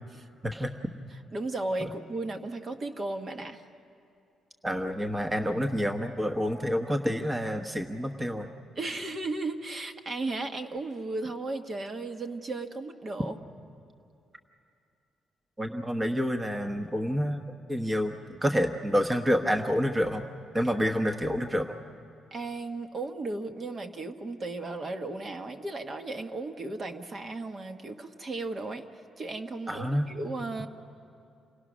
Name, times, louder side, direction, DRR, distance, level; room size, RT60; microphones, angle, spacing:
voice 1, 1.3-3.6 8.7-13.4 22.3-28.8 29.2-30.7, right 2 dB, 40° right, 6 dB, 1.3 m, -35 dB
voice 2, 4.6-8.5 15.6-17.4 17.7-20.2 20.5-21.7 29.7-30.1, equal, 15° right, 4 dB, 1.1 m, -28 dB
28.5 x 17.5 x 6.2 m, 2.6 s
cardioid pair, 90°, 0 cm